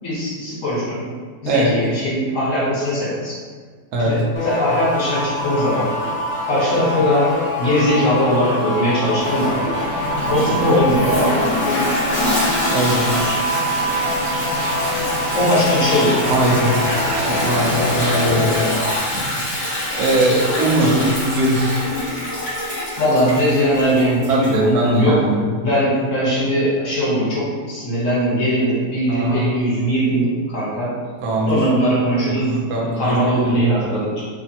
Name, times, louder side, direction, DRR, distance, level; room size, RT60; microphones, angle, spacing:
voice 1, 0.0-1.1 1.4-3.4 4.0-4.2 4.4-5.9 6.5-9.7 10.3-11.2 15.3-16.2 23.0-24.3 24.6-25.2 25.6-31.0 31.5-32.5 32.8-34.2, equal, 55° left, -8 dB, 1.3 m, -20 dB
voice 2, 1.4-1.8 3.9-4.2 12.7-13.5 15.5-15.6 16.3-16.9 17.3-18.7 19.1-19.3 19.7-21.8 24.3-25.5 29.1-29.5 31.2-31.6 32.2-33.6, right 1 dB, 75° right, -3 dB, 1.1 m, -20 dB
sound 1, 4.4-19.0, left 1 dB, 80° left, 0.5 m, -24 dB
sound 2, 9.2-18.7, equal, 30° right, 0.7 m, -30 dB
Toilet flush, 10.0-24.7, left 1 dB, 30° left, 0.7 m, -25 dB
3.3 x 2.1 x 2.7 m, 1.5 s
omnidirectional pair, 1.7 m